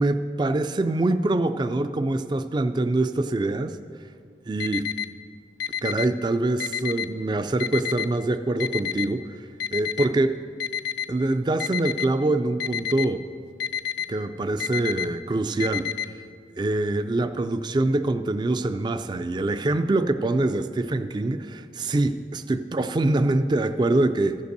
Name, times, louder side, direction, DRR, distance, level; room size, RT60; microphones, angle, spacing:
voice 1, 0.0-3.8 4.5-4.9 5.8-10.4 11.1-13.2 14.1-16.1 16.6-24.4, right 2 dB, 25° right, 10 dB, 0.3 m, -24 dB
Alarm, 4.6-5.1 5.6-6.1 6.6-7.1 7.6-8.1 8.6-9.1 9.6-10.1 10.6-11.1 11.6-12.1 12.6-13.1 13.6-14.1 14.6-15.1 15.6-16.1, left 9 dB, 70° left, 0.5 m, -28 dB
14.5 x 5.4 x 6.6 m, 2.1 s
head